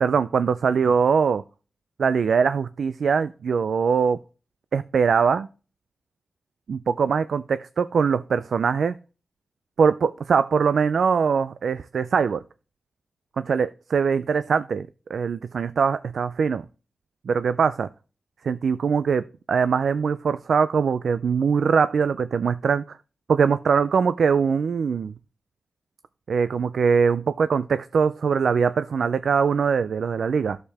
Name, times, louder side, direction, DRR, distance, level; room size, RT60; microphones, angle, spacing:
voice 1, 0.0-1.4 2.0-4.2 4.7-5.5 6.7-8.9 9.8-12.4 13.4-16.6 17.3-17.9 18.4-23.0 23.3-25.1 26.3-30.6, right 6 dB, 75° right, 0.4 m, -22 dB
11.5 x 6.7 x 3.4 m
wide cardioid pair, 110°, 0 cm